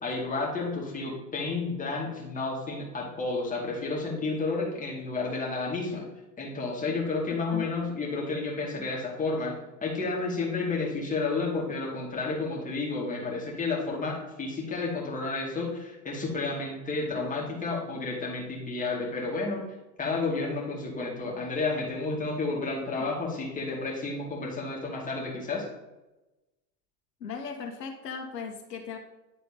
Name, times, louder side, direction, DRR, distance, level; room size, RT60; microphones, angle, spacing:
voice 1, 0.0-6.1 6.4-9.5 9.8-19.6 20.0-25.7, left 3 dB, 15° left, -2 dB, 2.3 m, -31 dB
voice 2, 27.2-29.0, left 6 dB, 80° left, 4 dB, 1.4 m, -37 dB
11.0 x 4.1 x 3.4 m, 1.0 s
hypercardioid pair, 105°, 48 cm